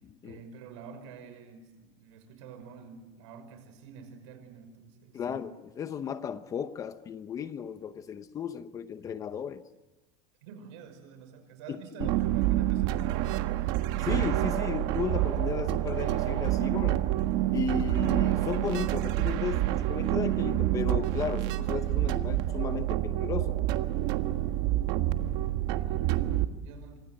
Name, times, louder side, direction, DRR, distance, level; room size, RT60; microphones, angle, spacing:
voice 1, 0.2-5.5 10.4-13.5 25.7-27.0, right 6 dB, 80° right, 5.9 m, -48 dB
voice 2, 5.1-5.5 5.8-9.6 11.7-12.1 14.0-17.0 17.5-23.6, left 7 dB, 20° left, 0.9 m, -35 dB
sound 1, 12.0-26.5, right 14 dB, 60° right, 1.5 m, -28 dB
28.5 x 26.0 x 7.8 m
cardioid pair, 175°, 15 cm